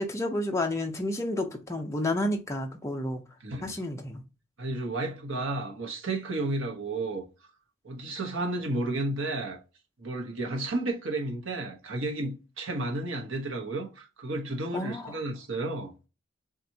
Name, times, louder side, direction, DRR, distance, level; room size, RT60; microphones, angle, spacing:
voice 1, 0.0-3.2 3.6-4.2 14.7-15.2, left 1 dB, 15° left, 0.7 m, -30 dB
voice 2, 3.4-3.8 4.6-7.2 7.8-9.6 10.0-15.9, right 2 dB, 75° right, 1.1 m, -32 dB
7.3 x 2.6 x 2.8 m
head